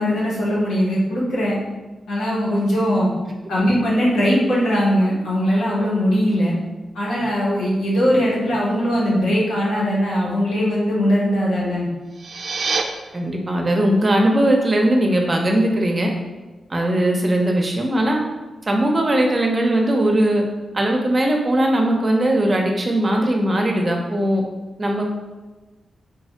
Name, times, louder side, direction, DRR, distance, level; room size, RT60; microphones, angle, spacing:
voice 1, 0.0-1.5 2.1-3.1 3.5-6.5 6.9-11.9, equal, 85° left, -5 dB, 1.2 m, -20 dB
sound 1, 12.0-12.8, right 4 dB, 60° right, 0.4 m, -25 dB
voice 2, 13.1-16.1 16.7-18.2 18.7-20.4 20.7-24.4 24.8-25.0, right 1 dB, 35° right, 1 dB, 0.7 m, -19 dB
3.5 x 2.3 x 4.3 m, 1.2 s
cardioid pair, 60°, 0 cm